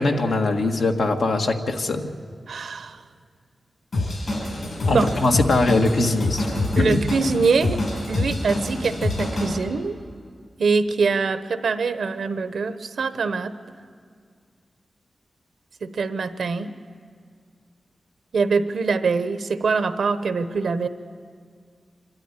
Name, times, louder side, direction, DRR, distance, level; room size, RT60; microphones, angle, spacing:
voice 1, 0.0-2.1 4.9-6.5 6.8-7.0, left 2 dB, 85° left, 2 dB, 1.6 m, -21 dB
voice 2, 2.5-3.0 4.9-5.1 6.8-7.8 8.1-10.0 10.6-13.5 15.8-16.7 18.3-20.9, right 4 dB, 85° right, 11 dB, 0.9 m, -23 dB
Drum kit / Drum, 3.9-9.5, left 2 dB, 65° left, 7.6 m, -26 dB
25.5 x 12.5 x 9.8 m, 2.1 s
cardioid pair, 70°, 0 cm